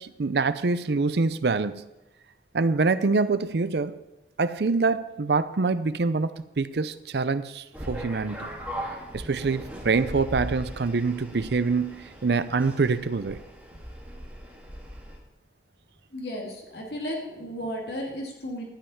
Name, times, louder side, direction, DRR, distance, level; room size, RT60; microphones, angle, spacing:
voice 1, 0.0-1.8 2.5-4.0 4.4-6.3 6.6-8.5 9.1-13.4, right 4 dB, 65° right, 14 dB, 0.5 m, -25 dB
sound 1, 7.7-15.2, equal, 10° right, 2.3 m, -39 dB
voice 2, 16.1-18.6, equal, 65° left, -1 dB, 2.7 m, -34 dB
12.5 x 5.6 x 8.6 m, 0.98 s
head